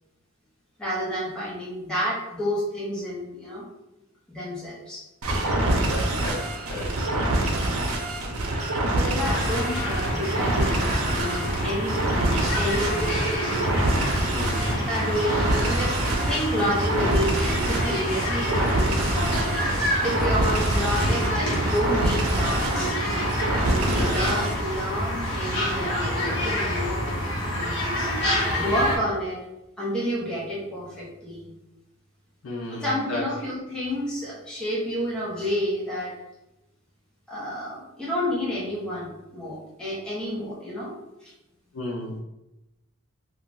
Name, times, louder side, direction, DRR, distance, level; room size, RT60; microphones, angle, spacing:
voice 1, 0.8-3.6 4.3-5.0 7.3-7.9 8.2-8.3 9.0-13.3 14.9-19.5 19.8-22.6 23.6-27.3 27.5-28.1 28.5-29.4 29.8-31.5 32.7-36.1 37.3-40.9 41.2-41.3, equal, 5° left, -8 dB, 0.7 m, -30 dB
sound 1, 5.2-24.6, right 1 dB, 90° right, 0.5 m, -26 dB
voice 2, 5.5-7.3 14.3-15.3 23.9-24.3 32.4-33.3 41.7-42.2, left 2 dB, 70° left, -3 dB, 0.5 m, -34 dB
sound 2, 6.3-16.0, right 3 dB, 40° right, 0.4 m, -42 dB
sound 3, 9.2-29.0, equal, 55° left, 0.9 m, -27 dB
2.3 x 2.3 x 3.8 m, 0.93 s
head